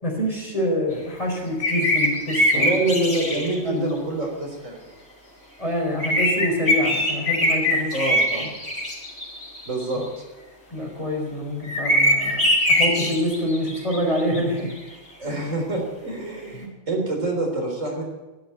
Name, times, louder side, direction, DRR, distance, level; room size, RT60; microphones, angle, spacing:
voice 1, 0.0-2.7 3.6-3.9 5.6-8.0 8.4-8.5 10.7-14.7 15.2-15.3, left 1 dB, 25° left, 0 dB, 4.3 m, -26 dB
sound 1, 1.6-3.6 6.0-10.0 11.6-14.4 14.7-14.8, left 1 dB, 55° left, 4.0 m, -22 dB
voice 2, 2.5-4.8 7.9-8.5 9.7-10.0 15.2-18.0, right 2 dB, 90° right, 1 dB, 4.2 m, -26 dB
11.5 x 11.5 x 8.9 m, 1.1 s
omnidirectional pair, 1.3 m